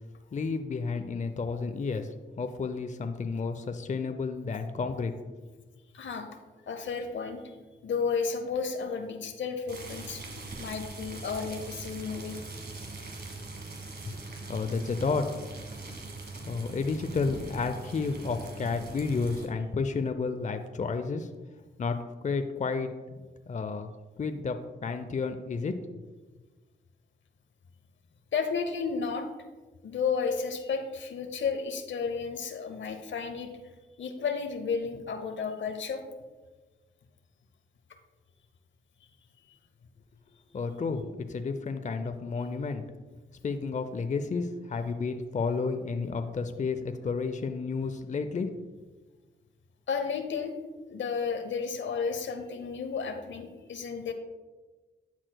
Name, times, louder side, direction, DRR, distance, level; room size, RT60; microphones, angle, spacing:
voice 1, 0.3-2.1 2.4-5.1 14.5-15.2 16.5-21.3 21.8-22.0 22.2-22.9 23.5-23.9 24.2-24.6 24.8-26.0 40.5-42.8 43.4-48.5, left 4 dB, 35° left, 8 dB, 0.5 m, -31 dB
voice 2, 5.9-6.3 6.7-7.5 7.8-12.4 28.3-29.3 29.8-33.5 34.0-36.0 49.9-50.5 50.9-54.1, left 5 dB, 70° left, 6 dB, 0.8 m, -32 dB
sound 1, 9.7-19.5, right 3 dB, 55° right, 1.4 m, -42 dB
12.0 x 4.4 x 2.2 m, 1.3 s
supercardioid pair, 40°, 20 cm